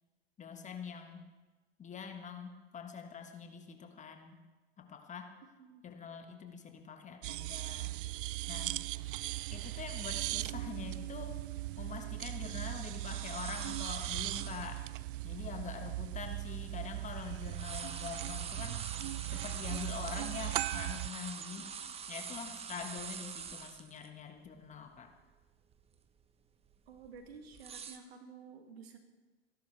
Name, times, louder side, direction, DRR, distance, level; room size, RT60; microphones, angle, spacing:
voice 1, 0.4-1.2 1.8-4.4 4.8-5.3 5.8-8.0 8.5-8.8 9.5-11.4 11.8-14.8 15.2-18.8 19.1-21.7 22.1-25.1, left 6 dB, 20° left, 5 dB, 1.5 m, -45 dB
sound 1, 7.2-21.1, right 18 dB, 55° right, 0.4 m, -39 dB
sound 2, 13.1-14.8 15.4-15.5 16.1-17.1 17.4-24.1 24.4-24.5 24.9-25.3 25.7-26.0 26.7-28.0, right 7 dB, 20° right, 0.9 m, -44 dB
voice 2, 21.6-21.9 26.9-29.0, right 5 dB, 70° right, 4 dB, 2.4 m, -52 dB
29.0 x 11.5 x 3.4 m, 1.2 s
hypercardioid pair, 95°, 32 cm